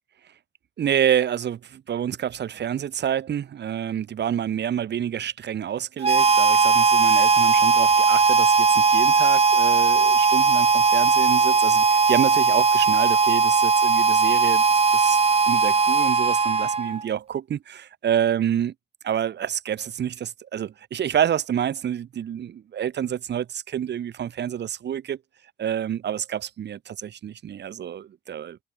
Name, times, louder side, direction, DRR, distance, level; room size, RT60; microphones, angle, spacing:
voice 1, 0.8-14.6 14.9-15.2 15.5-18.7 19.0-25.2 25.6-28.6, right 9 dB, 60° right, 2.5 m, -28 dB
Harmonica, 6.0-17.1, right 5 dB, 30° right, 1.6 m, -18 dB
cardioid pair, 90°, 20 cm